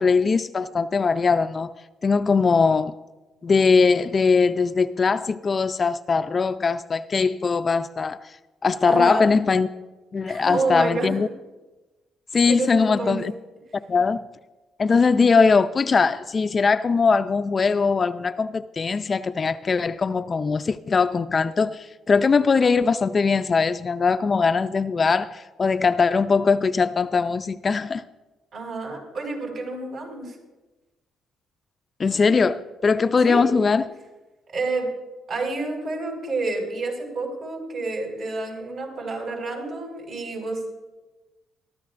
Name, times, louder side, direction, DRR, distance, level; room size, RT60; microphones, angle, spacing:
voice 1, 0.0-1.7 2.0-2.9 3.4-8.3 8.6-9.7 10.1-11.3 12.3-13.3 13.9-14.2 14.8-28.0 32.0-33.9, left 4 dB, 35° left, 0.4 m, -21 dB
voice 2, 8.8-9.3 10.3-11.1 12.5-13.2 28.5-30.4 33.2-33.4 34.5-34.9 35.3-40.6, right 3 dB, 60° right, 5.7 m, -29 dB
22.5 x 14.0 x 2.5 m
cardioid pair, 110°, 0 cm